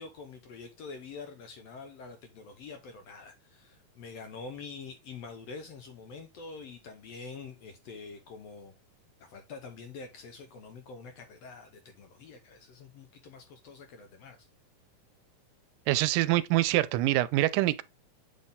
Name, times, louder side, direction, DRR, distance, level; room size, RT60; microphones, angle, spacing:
voice 1, 0.0-8.7 9.2-14.5, left 4 dB, 70° left, 1.6 m, -46 dB
voice 2, 15.9-17.8, right 17 dB, 85° right, 2.2 m, -25 dB
8.1 x 4.1 x 3.6 m
omnidirectional pair, 3.8 m